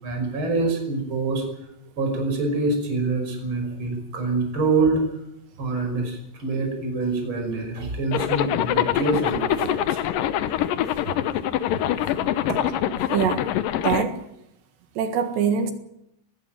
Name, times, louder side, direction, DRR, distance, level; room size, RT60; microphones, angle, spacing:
voice 1, 0.0-1.4 2.0-5.0 5.6-10.1 11.1-11.2 11.9-12.3, right 3 dB, 25° right, 3 dB, 6.0 m, -26 dB
Zipper (clothing), 8.1-14.0, left 11 dB, 85° left, 1.9 m, -24 dB
voice 2, 13.0-13.5 13.8-14.2 15.0-15.7, right 7 dB, 75° right, 7 dB, 3.9 m, -23 dB
20.0 x 16.0 x 9.2 m, 0.81 s
omnidirectional pair, 5.3 m